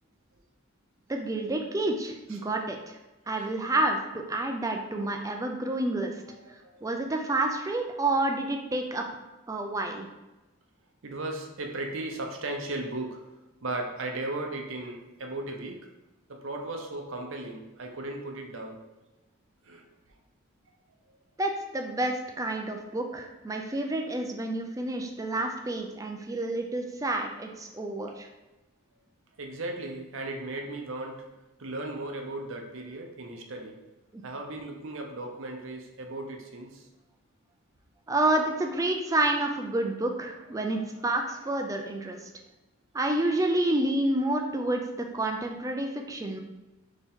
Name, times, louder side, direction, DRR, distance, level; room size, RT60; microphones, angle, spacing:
voice 1, 1.1-3.0 3.3-6.1 6.8-9.0 9.5-10.1 21.4-28.3 34.1-34.2 38.1-42.3 42.9-46.4, right 2 dB, 15° right, 3 dB, 0.3 m, -29 dB
voice 2, 6.3-6.9 11.0-13.2 13.6-15.9 16.3-18.8 19.6-19.8 29.4-31.2 31.6-33.8 34.2-36.9 40.6-41.3, right 2 dB, 60° right, 2 dB, 0.6 m, -36 dB
4.3 x 2.9 x 3.6 m, 1.1 s
head